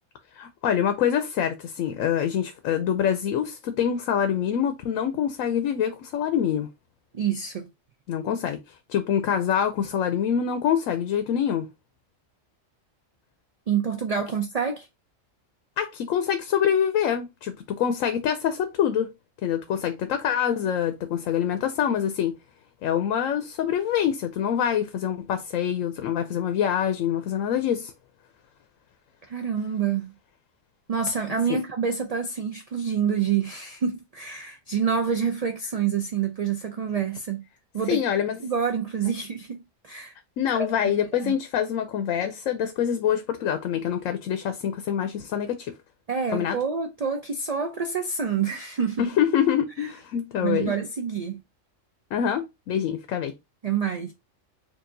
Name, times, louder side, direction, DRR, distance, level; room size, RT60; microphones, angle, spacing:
voice 1, 0.3-6.7 8.1-8.6 8.9-11.7 15.8-19.1 19.4-22.4 22.8-27.9 31.5-31.6 37.9-38.4 40.4-45.7 46.3-46.6 49.0-50.7 52.1-53.3, left 9 dB, 85° left, 1.0 m, -25 dB
voice 2, 7.1-7.7 13.7-14.9 29.3-30.1 30.9-37.4 37.7-38.0 38.4-40.1 41.2-41.3 46.1-49.1 49.8-49.9 50.4-51.4 53.6-54.1, right 7 dB, 70° right, 0.3 m, -27 dB
4.6 x 2.7 x 2.6 m
omnidirectional pair, 1.3 m